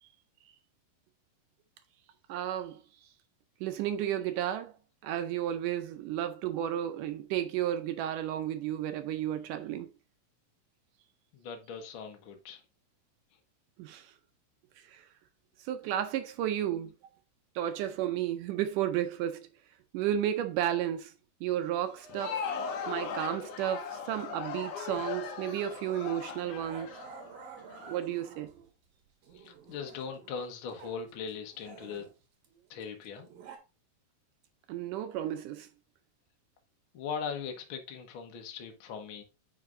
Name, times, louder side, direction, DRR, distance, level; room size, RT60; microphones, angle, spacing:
voice 1, 2.3-2.8 3.6-4.7 5.0-9.9 13.8-14.1 14.9-15.0 15.6-16.9 17.6-19.5 19.9-21.1 21.4-22.4 22.9-26.9 27.9-28.5 34.7-35.7, right 11 dB, 80° right, 1.9 m, -32 dB
voice 2, 11.3-12.6 29.3-32.1 32.7-33.3 36.9-39.2, left 6 dB, 85° left, 1.1 m, -40 dB
Crowd, 21.9-27.8, left 6 dB, 65° left, 2.3 m, -38 dB
Growling, 25.6-25.8 26.6-28.7 29.2-31.0 31.3-33.6, right 5 dB, 60° right, 1.9 m, -50 dB
9.5 x 4.8 x 2.6 m
omnidirectional pair, 4.2 m